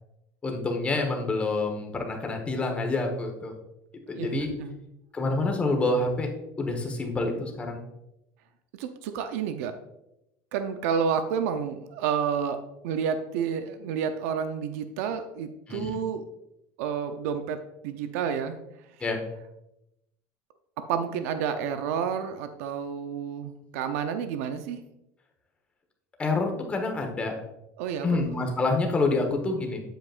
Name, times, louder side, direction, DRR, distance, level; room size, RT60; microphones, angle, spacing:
voice 1, 0.4-3.6 4.1-4.5 5.1-6.3 6.6-7.8 15.7-16.0 19.0-19.2 26.2-27.3 28.0-29.8, left 3 dB, 15° left, 2 dB, 1.2 m, -27 dB
voice 2, 4.1-4.7 8.8-9.8 10.5-16.2 16.8-18.6 20.9-24.8 27.8-28.1, right 7 dB, 80° right, 8 dB, 0.6 m, -30 dB
8.4 x 7.9 x 2.5 m, 0.87 s
cardioid pair, 155°, 8 cm